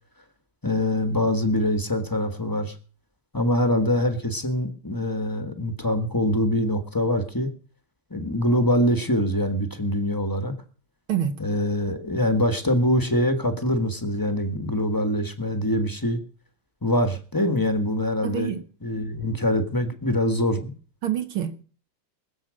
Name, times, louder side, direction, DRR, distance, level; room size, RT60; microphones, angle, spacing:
voice 1, 0.6-2.7 3.3-7.5 8.1-10.5 11.4-16.2 16.8-20.7, left 1 dB, 15° left, 0.9 m, -24 dB
voice 2, 18.2-18.6 21.0-21.6, right 10 dB, 75° right, 1.9 m, -26 dB
20.5 x 7.3 x 6.3 m
omnidirectional pair, 2.4 m